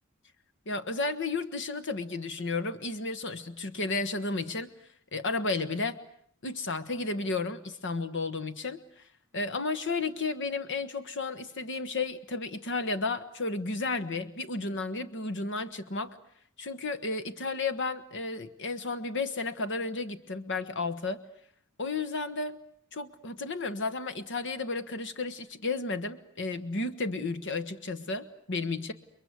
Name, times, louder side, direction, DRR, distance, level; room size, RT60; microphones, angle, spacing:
voice 1, 0.7-4.7 5.1-6.0 6.4-9.0 9.3-16.2 16.6-21.2 21.8-22.6 22.9-28.9, left 3 dB, 60° left, 12 dB, 1.4 m, -33 dB
30.0 x 22.5 x 8.2 m, 0.64 s
head